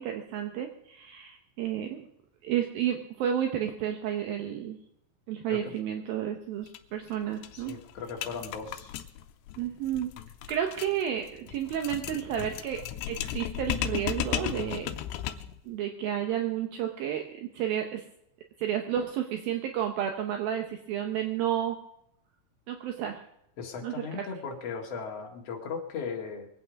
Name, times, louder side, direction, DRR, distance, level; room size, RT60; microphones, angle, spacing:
voice 1, 0.0-2.1 2.4-4.8 5.3-7.8 9.6-10.1 10.5-14.9 15.7-18.0 18.6-21.8 22.7-23.2 23.8-24.2, right 10 dB, 70° right, 4 dB, 2.4 m, -31 dB
sound 1, 6.7-6.8 7.1-7.2 7.4-15.6, left 12 dB, 90° left, 2.9 m, -35 dB
voice 2, 7.5-8.9 23.6-26.5, left 5 dB, 45° left, 0 dB, 2.5 m, -37 dB
23.0 x 8.6 x 5.2 m, 0.78 s
omnidirectional pair, 4.8 m